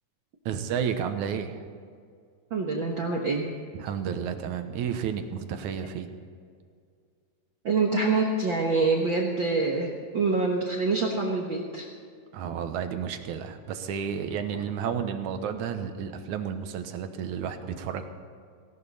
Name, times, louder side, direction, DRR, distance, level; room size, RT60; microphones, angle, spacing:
voice 1, 0.5-1.7 3.7-6.2 12.3-18.1, right 7 dB, 70° right, 8 dB, 2.3 m, -31 dB
voice 2, 2.5-3.5 7.6-11.9, right 3 dB, 55° right, 0 dB, 1.4 m, -26 dB
18.0 x 17.0 x 4.2 m, 2.2 s
omnidirectional pair, 3.8 m